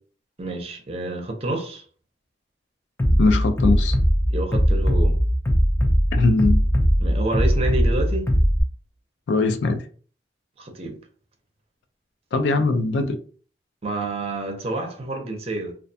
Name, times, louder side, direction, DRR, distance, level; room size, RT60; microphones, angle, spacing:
voice 1, 0.4-1.8 4.3-5.2 7.0-8.3 10.6-11.0 13.8-15.7, right 2 dB, 35° right, 0.6 m, -28 dB
Bass drum, 3.0-8.6, equal, 15° left, 0.4 m, -19 dB
voice 2, 3.1-4.0 6.1-6.7 9.3-9.9 12.3-13.2, left 3 dB, 75° left, 0.4 m, -21 dB
2.4 x 2.2 x 2.6 m
head